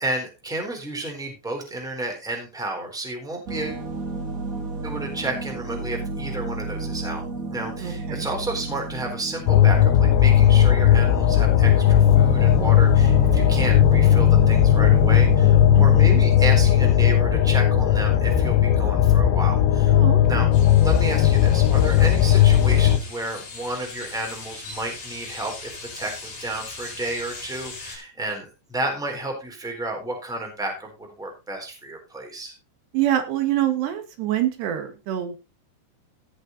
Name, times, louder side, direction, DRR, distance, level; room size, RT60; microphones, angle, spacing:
voice 1, 0.0-3.8 4.8-7.2 7.5-19.9 20.3-20.5 20.8-32.5, right 2 dB, ahead, 2 dB, 3.3 m, -31 dB
sound 1, 3.5-16.3, right 3 dB, 40° right, 1.2 m, -31 dB
voice 2, 7.8-8.3 15.7-16.2 19.9-20.2 32.9-35.4, right 12 dB, 75° right, 8 dB, 3.7 m, -26 dB
sound 2, 9.5-23.0, left 10 dB, 85° left, 3.3 m, -17 dB
sound 3, 20.5-28.0, left 3 dB, 45° left, 6.1 m, -40 dB
16.5 x 6.6 x 4.0 m, 0.27 s
omnidirectional pair, 4.9 m